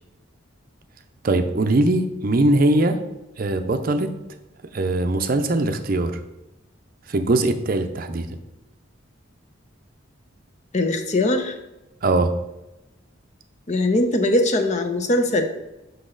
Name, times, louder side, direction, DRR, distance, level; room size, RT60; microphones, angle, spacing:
voice 1, 1.2-3.0 3.4-4.1 4.7-6.2 7.1-8.3 12.0-12.3, right 2 dB, 45° right, 8 dB, 0.5 m, -21 dB
voice 2, 10.7-11.6 13.7-15.5, left 1 dB, 35° left, 7 dB, 0.6 m, -21 dB
6.1 x 5.5 x 3.8 m, 0.97 s
head